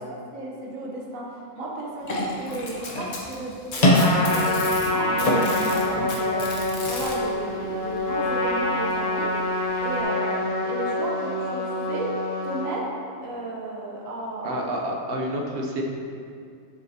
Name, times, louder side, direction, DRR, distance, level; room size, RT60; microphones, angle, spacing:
voice 1, 0.3-5.4 5.7-6.5 6.8-9.3 9.8-12.1 12.4-12.9 13.2-14.9, right 2 dB, 70° right, -2 dB, 1.5 m, -34 dB
sound 1, 2.0-10.0, left 1 dB, 40° left, 0.7 m, -27 dB
Packing tape duct tape, 2.5-4.9 5.2-7.2 8.3-8.4 8.9-9.0 9.9-10.0, left 2 dB, 55° left, 1.3 m, -34 dB
Trumpet, 3.9-12.7, left 2 dB, 80° left, 1.3 m, -26 dB
voice 2, 14.4-15.8, right 1 dB, 50° right, 0 dB, 0.9 m, -29 dB
7.1 x 6.4 x 2.9 m, 2.3 s
omnidirectional pair, 1.5 m